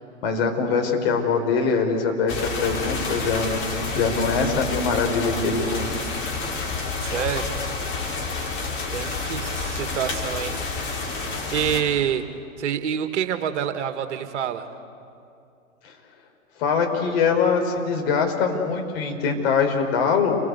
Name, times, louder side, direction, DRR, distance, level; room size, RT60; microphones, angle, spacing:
voice 1, 0.2-5.9 15.8-15.9 16.6-20.4, left 5 dB, 45° left, 3 dB, 4.7 m, -23 dB
sound 1, 2.3-11.8, left 4 dB, 30° left, 4.7 m, -29 dB
voice 2, 7.0-7.7 8.9-10.5 11.5-12.3 12.6-14.7, right 9 dB, 55° right, 8 dB, 1.9 m, -27 dB
29.0 x 22.0 x 8.3 m, 2.6 s
figure-of-eight pair, 115°, 40 cm